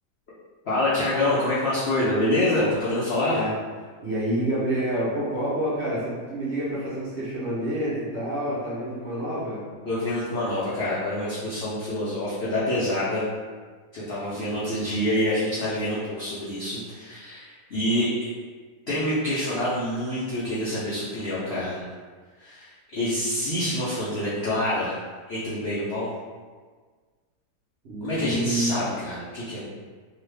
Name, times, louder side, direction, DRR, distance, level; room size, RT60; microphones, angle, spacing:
voice 1, 0.7-3.4 9.8-13.2 13.9-18.3 18.9-21.8 22.4-24.9 25.3-26.1 28.0-29.7, left 1 dB, 65° left, -10 dB, 0.6 m, -26 dB
voice 2, 4.0-9.6 14.3-14.8 27.8-28.8, right 1 dB, 50° right, -9 dB, 0.9 m, -28 dB
2.9 x 2.3 x 3.3 m, 1.5 s
omnidirectional pair, 1.9 m